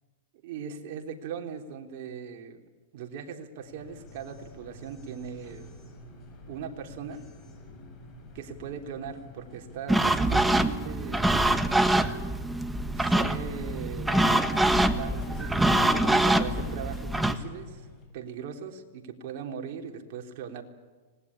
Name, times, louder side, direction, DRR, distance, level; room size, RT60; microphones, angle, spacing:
voice 1, 0.4-2.6 2.9-5.7 6.5-7.3 8.3-11.4 13.0-17.9 18.1-20.6, right 7 dB, 55° right, 3 dB, 3.4 m, -39 dB
sound 1, 3.6-18.0, left 4 dB, 30° left, 7.1 m, -43 dB
sound 2, 9.9-17.4, right 1 dB, 5° right, 1.4 m, -24 dB
26.0 x 19.5 x 9.9 m, 1.3 s
hypercardioid pair, 130°, 0 cm